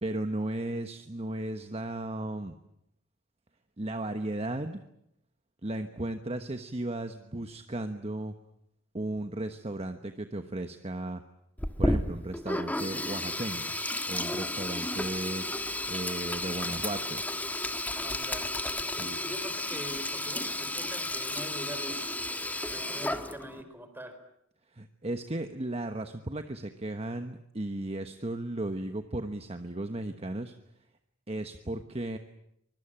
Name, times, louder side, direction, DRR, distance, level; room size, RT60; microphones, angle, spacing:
voice 1, 0.0-2.6 3.8-4.8 5.6-8.3 8.9-11.2 11.8-13.7 14.1-15.4 15.9-17.2 18.8-19.2 24.7-30.5 31.3-32.2, right 1 dB, 30° right, 8 dB, 1.2 m, -35 dB
Sink (filling or washing), 11.6-23.6, left 1 dB, 10° left, 1.4 m, -33 dB
voice 2, 18.0-18.5 19.0-22.2 22.7-24.2, equal, 10° right, 8 dB, 4.2 m, -43 dB
24.5 x 22.0 x 8.9 m, 0.78 s
head